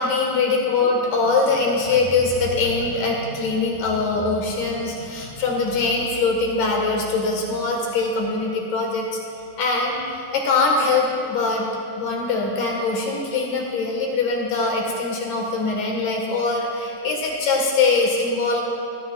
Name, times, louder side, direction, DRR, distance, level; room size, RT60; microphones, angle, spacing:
voice 1, 0.0-9.2 9.6-10.0 10.3-11.6 12.0-18.6, left 3 dB, 65° left, -1 dB, 2.8 m, -22 dB
20.5 x 13.0 x 2.3 m, 2.4 s
omnidirectional pair, 4.4 m